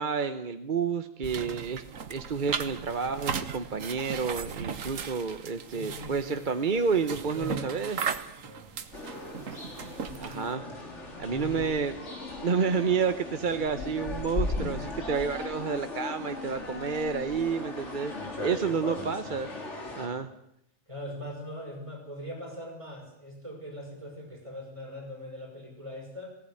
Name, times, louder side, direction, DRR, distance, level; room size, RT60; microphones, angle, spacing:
voice 1, 0.0-1.8 2.1-8.1 10.2-10.6 11.2-12.0 12.4-18.1 18.4-19.5 20.0-20.3, right 5 dB, 40° right, 9 dB, 1.0 m, -30 dB
sound 1, 1.2-10.5, right 6 dB, 80° right, 1.6 m, -37 dB
voice 2, 5.7-6.5 7.3-7.7 8.4-8.8 11.3-11.7 18.5-19.0 19.8-20.3 20.9-26.4, equal, 25° right, 0 dB, 6.1 m, -41 dB
sound 2, 8.9-20.1, left 2 dB, 60° left, 3.5 m, -37 dB
18.5 x 17.5 x 9.8 m, 0.77 s
omnidirectional pair, 1.3 m